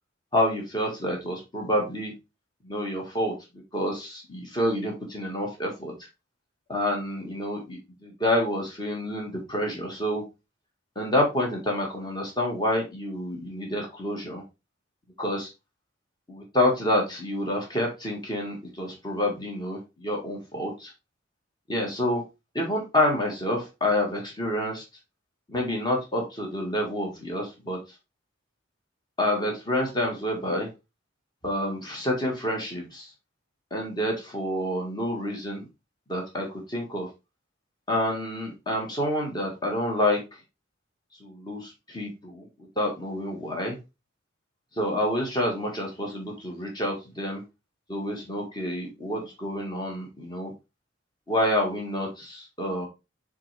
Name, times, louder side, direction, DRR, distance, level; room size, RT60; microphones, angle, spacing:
voice 1, 0.3-2.1 2.6-3.3 3.7-5.9 6.7-10.2 10.9-14.4 15.2-15.5 16.3-20.9 21.7-22.2 22.5-24.8 25.5-27.8 29.2-30.7 31.4-33.1 33.7-35.7 36.1-37.1 37.9-40.2 41.2-42.5 42.7-43.8 44.7-47.4 47.9-50.5 51.3-52.9, left 1 dB, 20° left, 0 dB, 1.6 m, -28 dB
7.3 x 3.8 x 3.4 m, 0.25 s
head